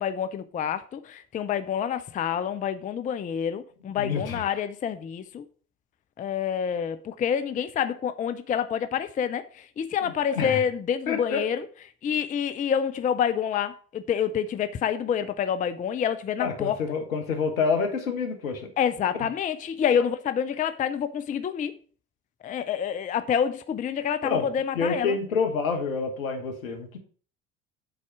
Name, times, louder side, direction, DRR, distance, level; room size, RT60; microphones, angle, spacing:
voice 1, 0.0-5.5 6.2-11.6 12.0-16.8 18.8-21.7 22.4-25.2, left 8 dB, 20° left, 0.5 m, -27 dB
voice 2, 4.0-4.6 10.0-10.6 11.1-11.4 16.4-18.7 24.2-24.5 24.7-27.0, left 5 dB, 75° left, 1.5 m, -28 dB
7.9 x 4.2 x 6.0 m
figure-of-eight pair, 60°, 42 cm